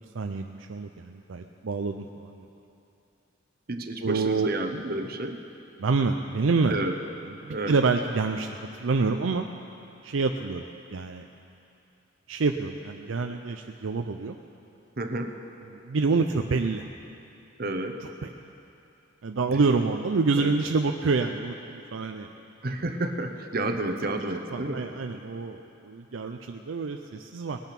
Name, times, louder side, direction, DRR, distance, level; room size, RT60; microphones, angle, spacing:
voice 1, 0.1-2.5 4.0-4.5 5.8-6.8 7.4-9.5 10.0-10.6 10.9-11.2 12.3-14.4 15.7-16.9 19.2-22.3 24.5-27.6, right 4 dB, 80° right, 4 dB, 0.5 m, -27 dB
voice 2, 3.7-5.4 6.7-7.0 7.5-7.8 15.0-15.3 17.6-18.0 19.5-19.6 20.4-20.5 22.6-24.9, right 2 dB, 50° right, 6 dB, 0.9 m, -30 dB
19.0 x 9.0 x 5.9 m, 2.7 s
head